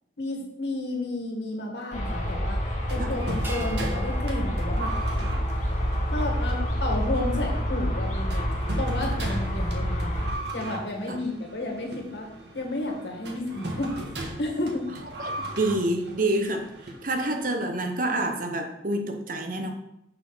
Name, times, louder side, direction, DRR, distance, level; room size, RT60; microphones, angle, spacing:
voice 1, 0.2-4.9 5.2-5.4 6.1-8.5 8.8-10.3 10.5-12.3 12.5-14.9, left 2 dB, 65° left, 1 dB, 1.7 m, -32 dB
sound 1, 1.9-10.3, equal, 40° left, 1.2 m, -27 dB
sound 2, 2.9-17.6, right 1 dB, 70° right, 1.4 m, -38 dB
sound 3, 3.4-6.0, left 1 dB, 10° right, 0.9 m, -42 dB
voice 2, 15.2-16.7 17.0-19.7, right 1 dB, 45° right, 4 dB, 0.9 m, -27 dB
6.8 x 4.2 x 5.6 m, 0.82 s
head